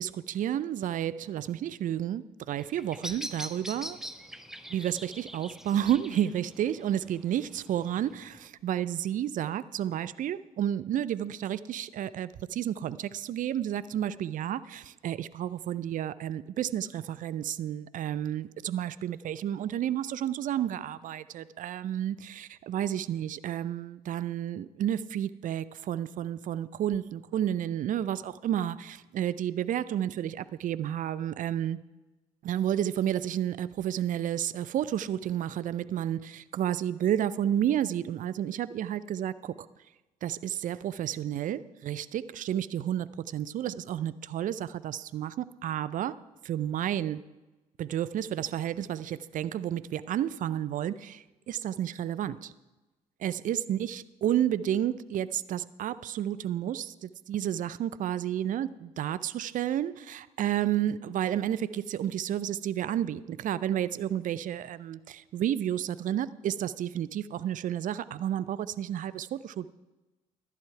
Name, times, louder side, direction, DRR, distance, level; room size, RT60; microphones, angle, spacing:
voice 1, 0.0-4.0 4.7-31.8 32.4-39.7 40.2-46.2 46.4-47.2 47.8-52.5 53.2-69.7, right 11 dB, 50° right, 17 dB, 0.5 m, -31 dB
Bird vocalization bird call bird song, 2.5-8.5, equal, 5° right, 0.9 m, -44 dB
11.5 x 10.5 x 4.7 m, 1.1 s
hypercardioid pair, 50°, 18 cm